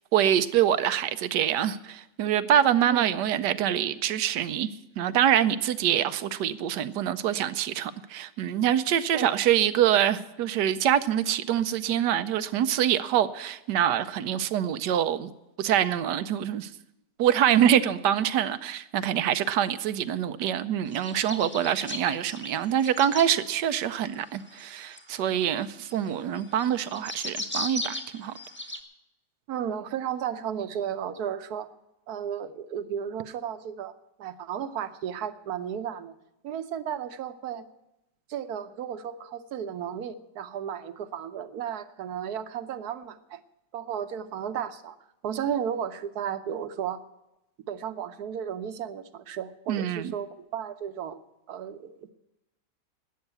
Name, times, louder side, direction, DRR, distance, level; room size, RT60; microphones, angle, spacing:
voice 1, 0.1-4.7 5.0-15.3 15.6-16.7 17.2-28.3 49.7-50.1, right 10 dB, 90° right, 1.3 m, -25 dB
sound 1, 20.9-23.3 24.0-28.8, left 1 dB, 10° left, 1.1 m, -36 dB
voice 2, 29.5-31.7 32.1-33.9 34.2-36.1 36.4-37.7 38.3-43.4 43.7-45.0 45.2-47.0 47.7-51.2 51.5-52.1, right 8 dB, 70° right, 1.3 m, -34 dB
12.5 x 9.5 x 8.1 m
omnidirectional pair, 1.8 m